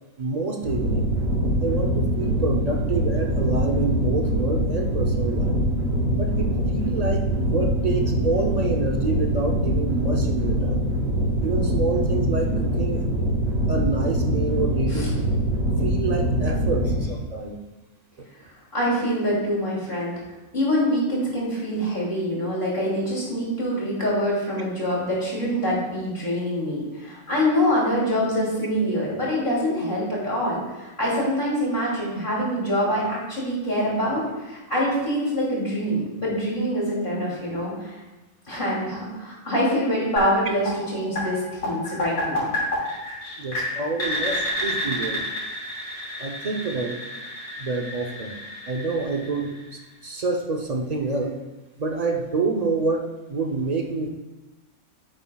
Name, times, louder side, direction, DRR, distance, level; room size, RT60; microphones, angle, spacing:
voice 1, 0.2-1.1 1.6-5.6 6.2-10.9 11.4-13.1 13.7-15.2 15.8-17.6 43.4-45.2 46.2-47.0 47.6-48.4 48.7-51.4 51.8-54.1, right 3 dB, 50° right, 2 dB, 0.5 m, -27 dB
sound 1, 0.6-17.0, equal, 65° right, 2.2 m, -23 dB
voice 2, 18.7-20.2 20.5-38.0 38.5-42.5, equal, 35° left, -5 dB, 2.9 m, -25 dB
sound 2, 40.2-50.0, left 1 dB, 90° left, 3.6 m, -31 dB
9.9 x 7.8 x 2.3 m, 1.1 s
omnidirectional pair, 1.5 m